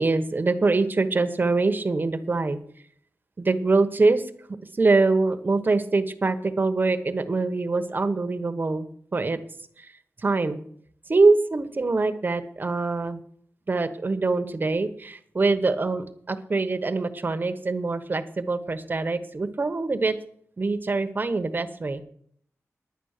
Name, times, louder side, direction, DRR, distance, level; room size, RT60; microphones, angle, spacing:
voice 1, 0.0-2.6 3.4-4.2 4.7-9.4 9.8-9.9 10.2-10.6 11.1-13.2 13.7-20.2 20.6-22.0, right 3 dB, 35° right, 8 dB, 1.2 m, -24 dB
10.0 x 9.9 x 6.6 m, 0.62 s
wide cardioid pair, 125°, 5 cm